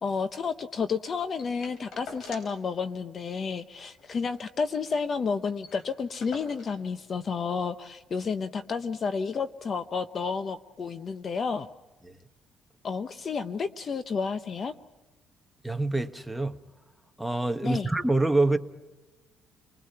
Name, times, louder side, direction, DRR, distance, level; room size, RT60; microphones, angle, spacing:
voice 1, 0.0-11.7 12.8-14.7 17.6-17.9, left 5 dB, 40° left, 11 dB, 0.8 m, -31 dB
sound 1, 1.4-2.7 3.0-3.1 3.4-3.5 3.9-5.0 5.3-5.4 5.6-6.9 7.7-7.8, left 4 dB, 75° left, 4.9 m, -47 dB
voice 2, 15.6-16.6 17.2-18.6, right 2 dB, 5° right, 6 dB, 1.2 m, -26 dB
30.0 x 21.0 x 5.7 m, 1.1 s
cardioid pair, 110°, 0 cm